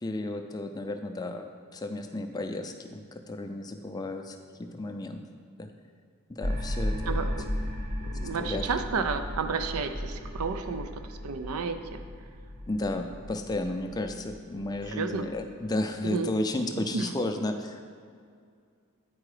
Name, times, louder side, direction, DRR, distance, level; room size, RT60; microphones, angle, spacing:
voice 1, 0.0-1.5 1.7-5.2 5.6-5.7 6.3-7.2 8.4-8.6 12.7-17.8, left 2 dB, 15° left, 5 dB, 0.4 m, -33 dB
sound 1, 6.4-15.8, equal, 55° right, 1.4 m, -35 dB
voice 2, 7.1-7.6 8.0-12.0 14.9-15.3 16.0-16.3 16.7-17.1, right 5 dB, 80° right, 8 dB, 0.5 m, -32 dB
8.6 x 4.7 x 4.9 m, 2.3 s
head